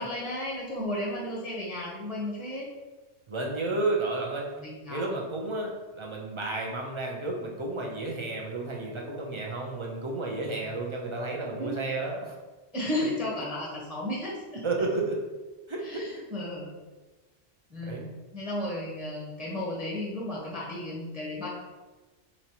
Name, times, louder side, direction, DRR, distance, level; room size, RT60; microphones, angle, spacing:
voice 1, 0.0-2.7 4.6-5.1 11.6-11.8 12.7-14.6 15.8-16.7 17.7-18.0 18.3-21.5, left 1 dB, ahead, -5 dB, 0.8 m, -34 dB
voice 2, 3.3-4.5 4.9-12.3 14.6-15.2 15.7-16.2 17.8-18.0, right 2 dB, 35° right, -1 dB, 0.6 m, -32 dB
5.2 x 3.0 x 2.8 m, 1.2 s
omnidirectional pair, 1.2 m